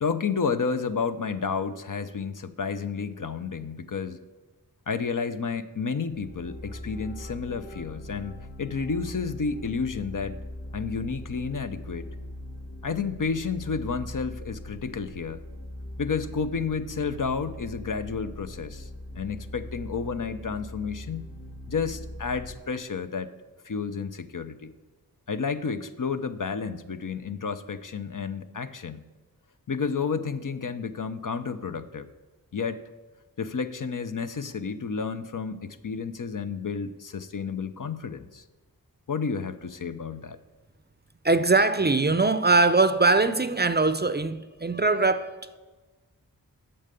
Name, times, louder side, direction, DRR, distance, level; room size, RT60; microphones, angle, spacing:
voice 1, 0.0-4.2 4.9-10.4 10.7-12.1 12.8-15.4 16.0-18.9 19.2-21.2 21.7-23.3 23.6-24.7 25.3-29.0 29.7-32.1 32.5-32.8 33.4-38.4 39.1-40.4, left 5 dB, 55° left, 0.6 m, -31 dB
sound 1, 6.1-22.5, left 1 dB, 35° left, 2.5 m, -41 dB
voice 2, 41.2-45.6, right 3 dB, 25° right, 0.5 m, -22 dB
8.7 x 6.6 x 6.8 m
wide cardioid pair, 40°, 38 cm